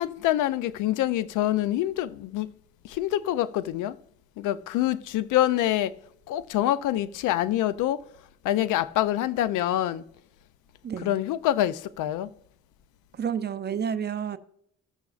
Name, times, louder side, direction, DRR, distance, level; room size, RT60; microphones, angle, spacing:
voice 1, 0.0-2.5 2.8-4.0 4.4-5.9 6.3-8.0 8.4-10.0 11.0-12.3, left 13 dB, 85° left, 0.5 m, -26 dB
voice 2, 10.8-11.1 13.2-14.4, right 7 dB, 35° right, 0.5 m, -30 dB
15.0 x 6.8 x 2.4 m
cardioid pair, 90°, 30 cm